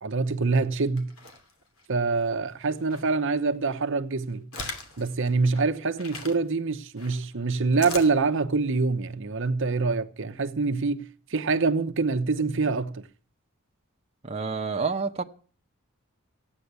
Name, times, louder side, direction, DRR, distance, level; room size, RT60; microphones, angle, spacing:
voice 1, 0.0-1.1 1.9-4.5 5.0-13.1, right 4 dB, 60° right, 0.8 m, -25 dB
sound 1, 1.0-1.9 2.5-3.1 3.5-6.4 7.0-8.1, left 3 dB, 75° left, 2.7 m, -40 dB
voice 2, 14.2-15.2, right 4 dB, 30° right, 0.8 m, -28 dB
15.0 x 9.1 x 8.2 m
head